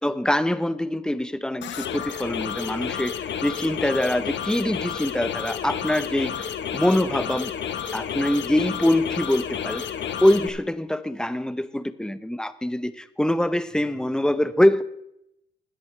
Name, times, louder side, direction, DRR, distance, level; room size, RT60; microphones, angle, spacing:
voice 1, 0.0-3.1 3.4-6.3 6.7-7.5 7.9-9.8 10.2-14.8, left 1 dB, 5° left, 14 dB, 0.7 m, -24 dB
sound 1, 1.6-10.5, left 8 dB, 65° left, 1.0 m, -31 dB
20.5 x 8.4 x 3.2 m, 0.80 s
cardioid pair, 90°, 20 cm